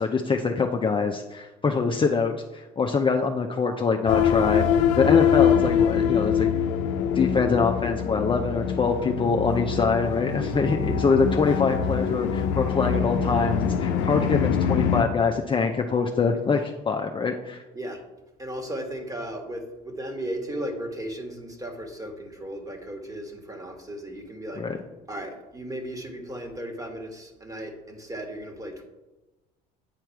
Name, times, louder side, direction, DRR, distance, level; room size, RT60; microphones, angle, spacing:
voice 1, 0.0-6.5 7.2-17.6 24.6-24.8, left 4 dB, 25° left, 3 dB, 0.7 m, -24 dB
sound 1, 4.1-15.0, left 8 dB, 65° left, 0.6 m, -24 dB
voice 2, 18.4-24.6 25.1-28.8, right 1 dB, 15° right, 4 dB, 1.6 m, -36 dB
9.1 x 4.6 x 4.5 m, 1.1 s
hypercardioid pair, 70°, 21 cm